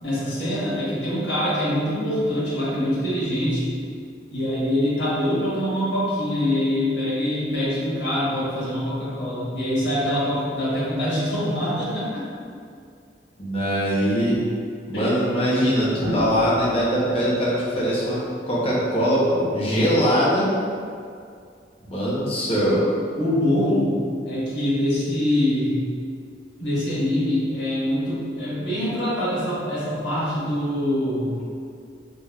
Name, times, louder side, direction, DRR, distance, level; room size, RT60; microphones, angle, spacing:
voice 1, 0.0-3.6 4.3-12.3 14.9-15.2 19.7-19.9 23.2-23.9 24.3-25.8 26.6-31.3, left 1 dB, 85° left, -9 dB, 1.4 m, -24 dB
voice 2, 13.4-14.4 14.9-20.5 21.8-22.8, equal, 35° left, -7 dB, 0.9 m, -22 dB
sound 1, 14.4-14.5 15.8-18.9 20.5-20.8, right 1 dB, 90° right, 1.1 m, -32 dB
3.8 x 3.5 x 2.3 m, 2.3 s
head